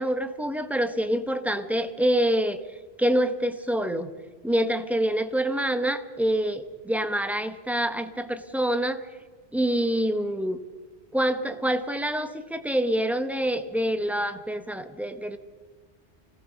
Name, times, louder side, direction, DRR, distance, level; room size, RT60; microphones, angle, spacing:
voice 1, 0.0-2.6 3.0-4.1 4.4-9.1 9.5-10.6 11.1-15.4, equal, ahead, 9 dB, 1.1 m, -26 dB
25.5 x 17.5 x 6.4 m, 1.4 s
omnidirectional pair, 1.2 m